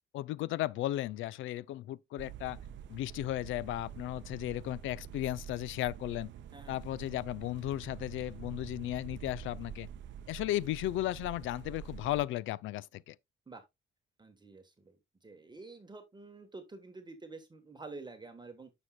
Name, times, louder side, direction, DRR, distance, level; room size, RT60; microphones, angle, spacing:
voice 1, 0.1-2.6 2.9-6.3 6.7-9.9 10.3-13.2, left 15 dB, 80° left, 0.4 m, -35 dB
sound 1, 2.2-12.3, right 9 dB, 70° right, 0.6 m, -47 dB
voice 2, 14.2-15.0 15.2-18.7, right 3 dB, 20° right, 1.2 m, -49 dB
9.5 x 6.2 x 2.2 m
cardioid pair, 90°, 20 cm